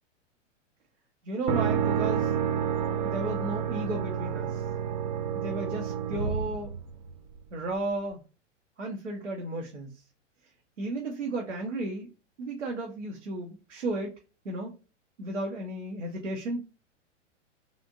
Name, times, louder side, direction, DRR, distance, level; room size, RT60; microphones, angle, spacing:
voice 1, 1.2-2.3 3.0-4.6 5.3-6.7 7.5-8.2 8.8-9.9 10.8-12.1 12.4-14.1 14.4-14.7 15.2-16.6, right 2 dB, 75° right, 0 dB, 1.0 m, -34 dB
sound 1, 1.5-7.4, right 8 dB, 40° right, 0.4 m, -29 dB
3.3 x 2.5 x 2.5 m, 0.33 s
figure-of-eight pair, 100°, 37 cm